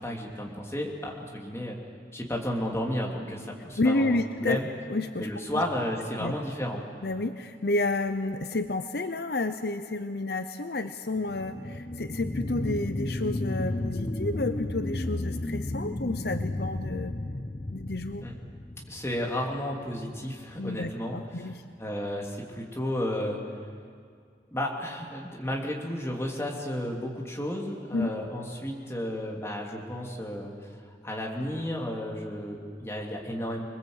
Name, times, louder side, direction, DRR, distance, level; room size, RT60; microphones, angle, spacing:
voice 1, 0.0-1.8 2.1-4.7 5.2-6.8 18.2-18.3 18.9-21.5 21.8-23.4 24.5-30.7 31.0-33.6, left 1 dB, 15° left, -1 dB, 2.9 m, -33 dB
voice 2, 3.8-4.6 4.9-5.6 6.2-6.3 7.0-17.1 17.7-18.3 20.6-21.6 27.9-28.1, left 2 dB, 65° left, 9 dB, 0.7 m, -30 dB
sound 1, 11.1-20.2 20.7-20.8, left 1 dB, 30° left, 0.7 m, -33 dB
26.5 x 21.0 x 8.0 m, 2.2 s
head